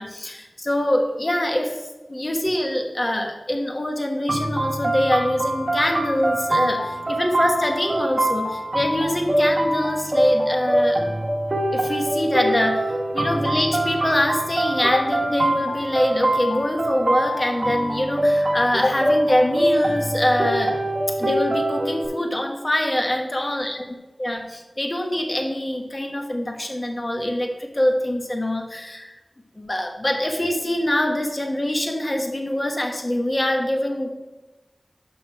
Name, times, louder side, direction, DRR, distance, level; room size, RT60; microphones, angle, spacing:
voice 1, 0.0-1.8 2.1-11.0 11.7-12.9 13.1-20.8 21.2-23.8 24.2-29.2 29.6-34.1, left 1 dB, 40° left, 3 dB, 1.1 m, -24 dB
sound 1, 4.3-22.1, right 1 dB, 40° right, 1.4 m, -24 dB
6.1 x 6.0 x 4.6 m, 1.1 s
wide cardioid pair, 60°, 0 cm